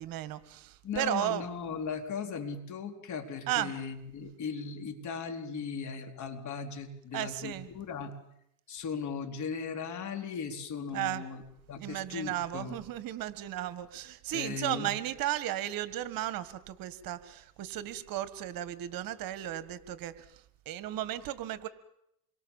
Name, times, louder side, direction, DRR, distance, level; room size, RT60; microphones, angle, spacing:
voice 1, 0.0-1.5 3.5-3.7 7.1-7.7 10.9-11.2 11.8-20.2 20.6-21.7, right 13 dB, 55° right, 13 dB, 1.8 m, -35 dB
voice 2, 0.8-8.1 8.7-11.4 11.7-12.8 14.3-14.9, left 6 dB, 45° left, 5 dB, 4.0 m, -37 dB
28.0 x 23.5 x 7.3 m, 0.77 s
supercardioid pair, 115°, 41 cm